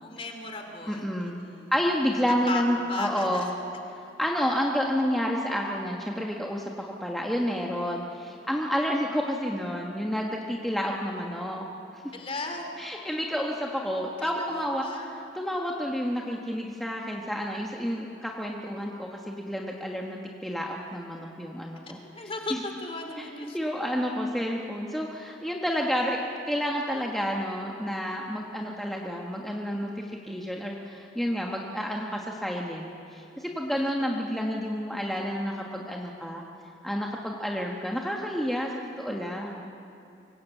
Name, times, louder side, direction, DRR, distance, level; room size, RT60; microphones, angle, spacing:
voice 1, 0.0-1.7 2.5-2.6 2.9-3.5 12.1-12.8 14.2-15.1 22.0-23.6 33.8-33.9, left 2 dB, 30° left, 4 dB, 2.8 m, -36 dB
voice 2, 0.9-1.4 1.7-3.5 4.2-11.6 11.9-12.0 12.8-14.8 15.3-22.0 22.5-22.6 23.5-36.4 36.8-39.6, equal, ahead, -1 dB, 1.4 m, -30 dB
24.0 x 19.0 x 8.3 m, 2.7 s
head